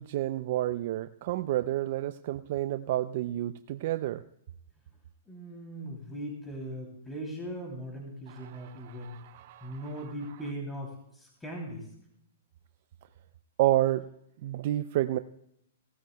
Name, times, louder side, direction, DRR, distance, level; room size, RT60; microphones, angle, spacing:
voice 1, 0.0-4.2 8.3-9.9 13.6-14.1 14.4-15.2, right 14 dB, 55° right, 11 dB, 0.4 m, -30 dB
voice 2, 5.3-9.2 9.6-11.9, right 1 dB, 10° left, -2 dB, 3.0 m, -39 dB
18.0 x 14.0 x 2.3 m, 0.73 s
hypercardioid pair, 130°, 0 cm